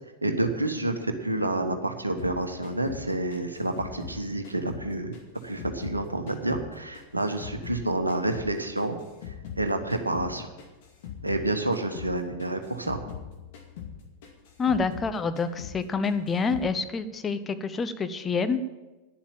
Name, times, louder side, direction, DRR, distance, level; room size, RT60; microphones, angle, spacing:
voice 1, 0.2-5.1 5.4-9.0 9.6-10.5 11.2-13.0, right 2 dB, 85° right, 6 dB, 1.2 m, -29 dB
sound 1, 2.2-4.9 5.1-7.8 8.1-11.5 11.7-12.1 12.4-15.1 15.4-16.7, left 9 dB, 55° left, 2.3 m, -42 dB
voice 2, 14.6-18.6, left 4 dB, 20° left, 10 dB, 0.8 m, -27 dB
11.0 x 7.2 x 8.9 m, 1.1 s
figure-of-eight pair, 90°, 0 cm